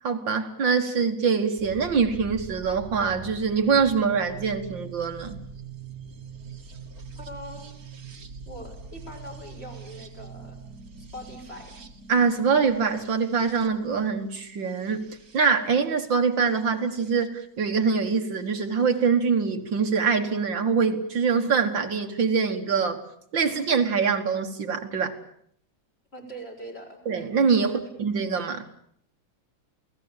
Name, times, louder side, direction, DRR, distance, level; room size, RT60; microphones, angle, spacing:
voice 1, 0.0-5.4 12.1-23.0 23.3-25.2 27.1-28.7, right 5 dB, 65° right, 2.4 m, -24 dB
sound 1, 1.6-17.3 18.5-19.1, right 5 dB, 45° right, 2.3 m, -44 dB
voice 2, 7.2-7.8 8.5-10.6 11.0-11.8 26.1-27.0 27.6-27.9, equal, 30° left, 6.2 m, -42 dB
29.0 x 18.5 x 8.9 m
omnidirectional pair, 2.2 m